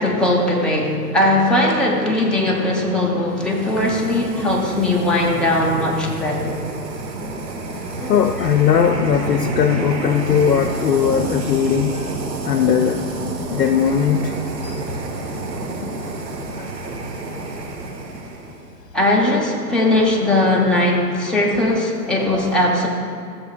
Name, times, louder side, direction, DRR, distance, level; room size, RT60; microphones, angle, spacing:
voice 1, 0.0-6.6 8.0-8.2 18.9-22.9, left 1 dB, ahead, -3 dB, 0.5 m, -19 dB
sound 1, 3.3-18.7, right 2 dB, 85° right, 1.3 m, -29 dB
voice 2, 8.0-12.1 12.4-13.0 13.5-14.3 14.6-14.8 15.8-15.9 16.6-16.7, left 8 dB, 80° left, 6 dB, 0.6 m, -19 dB
14.0 x 6.7 x 2.4 m, 2.1 s
hypercardioid pair, 115°, 48 cm